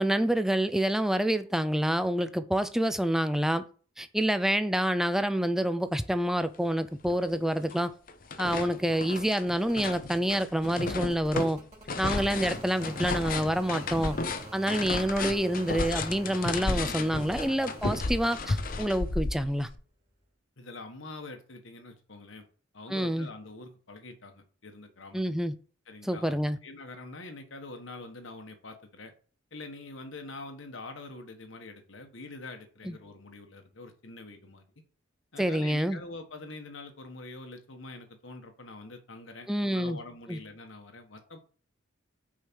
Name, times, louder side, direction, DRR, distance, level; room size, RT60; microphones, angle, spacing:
voice 1, 0.0-3.7 4.0-7.9 8.4-11.6 12.0-14.2 14.5-19.7 22.9-23.3 25.1-25.5 26.0-26.6 32.8-32.9 35.4-36.0 39.5-40.0 40.3-40.4, equal, ahead, 0.4 m, -27 dB
sound 1, 6.6-6.7 7.1-7.8 8.1-19.8, left 3 dB, 45° left, 0.7 m, -33 dB
sound 2, 7.9-18.8 20.2-20.3, right 1 dB, 35° right, 2.8 m, -48 dB
voice 2, 20.6-22.5 22.7-25.2 25.9-29.1 29.5-34.6 35.3-41.4, left 2 dB, 75° left, 1.5 m, -45 dB
6.4 x 5.0 x 6.2 m
head